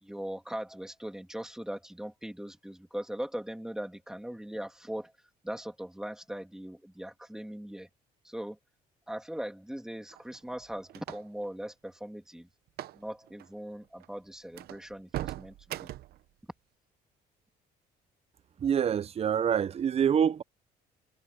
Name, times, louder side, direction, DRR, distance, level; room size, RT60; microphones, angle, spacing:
voice 1, 0.0-5.1 5.4-7.9 8.2-8.6 9.1-12.5 12.9-15.9, right 1 dB, 5° right, 2.8 m, -40 dB
sound 1, 10.1-11.5 12.7-13.0 13.3-13.5 14.0-14.1 14.5-16.2, right 14 dB, 65° right, 0.8 m, -40 dB
voice 2, 18.6-20.4, right 8 dB, 35° right, 0.7 m, -26 dB
cardioid pair, 110°, 17 cm